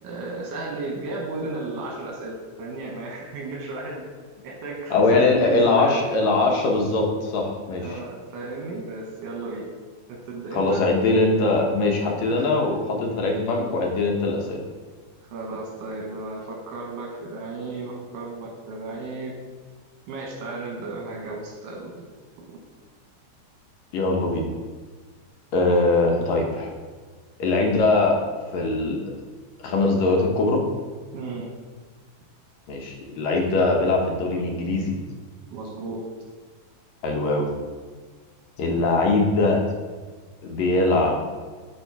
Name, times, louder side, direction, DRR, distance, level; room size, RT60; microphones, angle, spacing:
voice 1, 0.0-4.1 4.4-6.1 7.8-9.7 10.1-10.8 12.3-12.5 15.3-19.4 20.1-22.0 22.5-22.6 31.1-31.5 35.5-36.0 38.7-38.8, right 2 dB, 85° right, -2 dB, 2.6 m, -34 dB
voice 2, 4.9-8.0 10.5-14.6 23.9-24.5 25.5-26.7 27.4-28.2 28.5-29.0 29.6-30.6 32.7-35.0 37.0-37.5 38.6-39.6 40.4-41.3, left 2 dB, 70° left, 1 dB, 2.1 m, -21 dB
11.0 x 3.7 x 4.6 m, 1.4 s
omnidirectional pair, 3.5 m